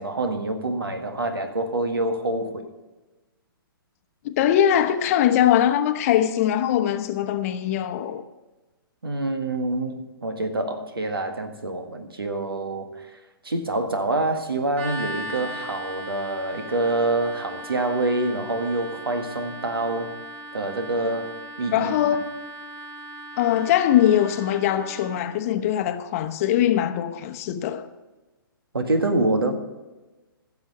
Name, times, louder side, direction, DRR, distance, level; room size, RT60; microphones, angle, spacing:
voice 1, 0.0-2.7 9.0-13.2 13.4-20.1 20.5-21.9 28.7-29.5, right 2 dB, 80° right, 1.7 m, -26 dB
voice 2, 4.2-8.2 21.7-22.3 23.4-27.9, left 11 dB, 40° left, 0.9 m, -21 dB
sound 1, 14.7-25.4, right 1 dB, 35° right, 2.2 m, -38 dB
15.0 x 7.2 x 5.5 m
figure-of-eight pair, 125°, 12 cm